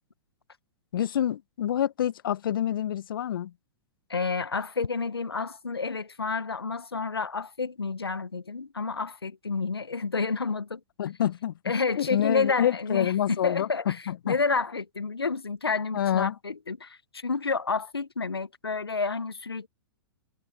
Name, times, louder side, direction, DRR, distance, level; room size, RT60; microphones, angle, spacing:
voice 1, 0.9-3.5 11.0-14.4 15.9-16.3, left 10 dB, 60° left, 1.3 m, -27 dB
voice 2, 4.1-10.8 11.7-14.0 14.2-19.7, left 4 dB, 85° left, 1.5 m, -30 dB
figure-of-eight pair, 110°, 13 cm